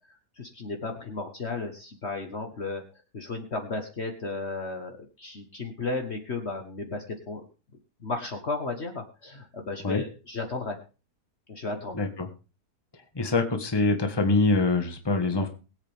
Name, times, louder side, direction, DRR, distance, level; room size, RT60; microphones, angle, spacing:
voice 1, 0.4-7.4 8.0-10.8 11.5-12.0, left 3 dB, 45° left, 4 dB, 1.5 m, -34 dB
voice 2, 11.9-12.3 13.1-15.5, left 3 dB, 15° left, 5 dB, 1.5 m, -24 dB
21.5 x 8.2 x 3.5 m, 0.33 s
omnidirectional pair, 1.7 m